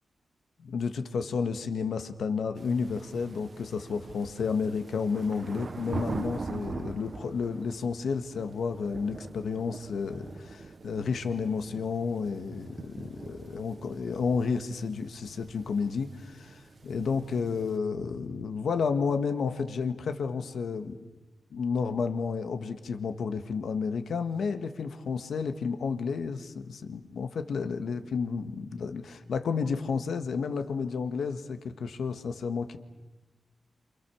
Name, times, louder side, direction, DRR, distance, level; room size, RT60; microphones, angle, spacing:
voice 1, 0.6-21.0 21.5-32.8, left 5 dB, 85° left, 8 dB, 1.8 m, -31 dB
sound 1, 2.6-17.8, right 4 dB, 50° right, 1.3 m, -43 dB
28.5 x 28.0 x 7.2 m, 1.1 s
wide cardioid pair, 90°, 0 cm